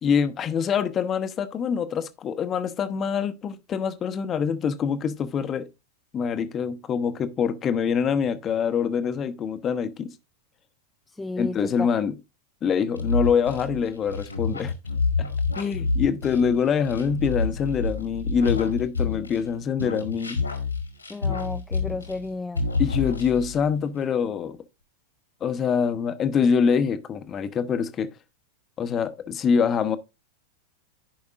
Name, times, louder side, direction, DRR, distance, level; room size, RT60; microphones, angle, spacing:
voice 1, 0.0-5.7 6.1-10.1 11.4-12.1 12.6-14.7 15.2-15.3 15.6-20.4 22.8-24.6 25.4-28.1 28.8-30.0, left 6 dB, 25° left, 0.8 m, -25 dB
voice 2, 11.1-11.9 21.1-22.7, left 2 dB, 10° left, 0.3 m, -33 dB
sound 1, 12.9-19.5 19.8-22.3 22.5-23.6, left 4 dB, 80° left, 1.9 m, -28 dB
14.5 x 5.2 x 2.5 m
figure-of-eight pair, 90°, 0 cm